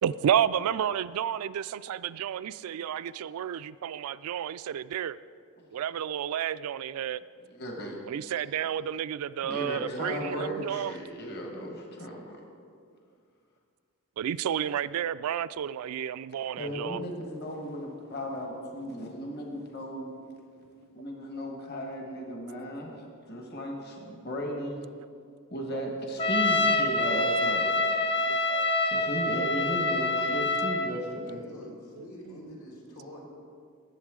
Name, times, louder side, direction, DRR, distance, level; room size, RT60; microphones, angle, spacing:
voice 1, 0.0-5.2 5.7-7.2 8.0-11.0 14.2-17.0 21.3-21.5 24.1-24.2 25.7-25.9 27.2-27.3 27.8-28.0 28.3-28.7 31.6-32.0, right 9 dB, 80° right, 16 dB, 0.3 m, -31 dB
voice 2, 7.5-8.0 9.4-12.4 16.6-20.1 20.9-22.9 23.3-24.8 25.5-27.9 28.9-31.4, equal, 45° left, 1 dB, 1.3 m, -35 dB
Trumpet, 26.2-30.9, left 2 dB, 25° left, 0.5 m, -26 dB
voice 3, 31.2-33.2, equal, 80° left, -4 dB, 3.0 m, -46 dB
18.5 x 7.9 x 3.7 m, 2.2 s
head